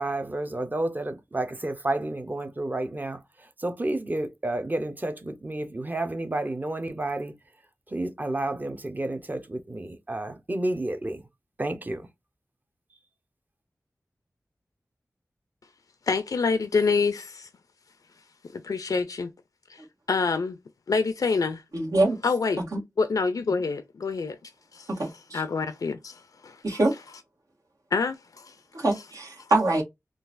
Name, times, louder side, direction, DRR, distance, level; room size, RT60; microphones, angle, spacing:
voice 1, 0.0-7.3 7.9-11.2 11.6-12.1, right 2 dB, 30° right, 0.7 m, -30 dB
voice 2, 16.1-17.5 18.5-19.3 19.7-19.8 20.1-20.6 20.9-21.6 22.2-22.6 23.0-24.4 24.7-26.6 27.9-28.6 29.4-29.5, left 4 dB, 85° left, 0.4 m, -27 dB
voice 3, 21.7-22.2 22.7-22.8 25.0-25.4 26.6-26.9 28.7-29.8, right 2 dB, 80° right, 1.4 m, -24 dB
3.8 x 2.4 x 2.5 m
wide cardioid pair, 70°, 6 cm